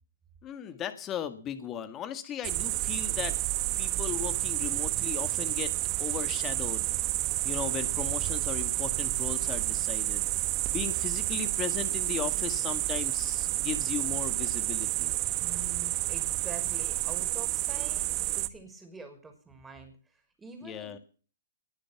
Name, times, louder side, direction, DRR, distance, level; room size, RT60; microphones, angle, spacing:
voice 1, 0.4-3.4 3.8-5.7 6.0-6.9 7.4-10.3 10.7-15.1 20.6-21.0, left 9 dB, 25° left, 11 dB, 1.9 m, -37 dB
sound 1, 2.4-18.5, right 19 dB, 35° right, 1.2 m, -30 dB
voice 2, 15.4-18.0 18.4-21.0, right 2 dB, 10° right, 5 dB, 6.0 m, -46 dB
20.5 x 10.0 x 6.0 m, 0.40 s
hypercardioid pair, 125°, 0 cm